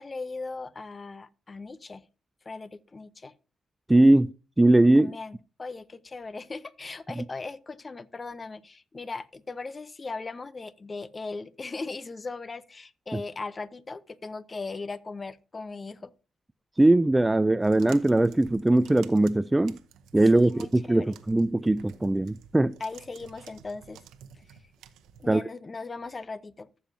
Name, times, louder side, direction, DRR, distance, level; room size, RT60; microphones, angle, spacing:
voice 1, 0.0-2.1 2.4-3.3 5.0-16.1 20.3-21.2 22.8-24.0 24.3-24.4 25.2-26.7, left 3 dB, 40° left, 0.9 m, -38 dB
voice 2, 3.9-4.3 4.6-5.1 13.1-13.2 16.8-19.8 20.1-22.8 25.3-25.4, right 2 dB, 15° right, 0.4 m, -20 dB
sound 1, 17.6-25.3, right 8 dB, 85° right, 1.0 m, -51 dB
14.5 x 7.2 x 2.8 m
supercardioid pair, 55°, 0 cm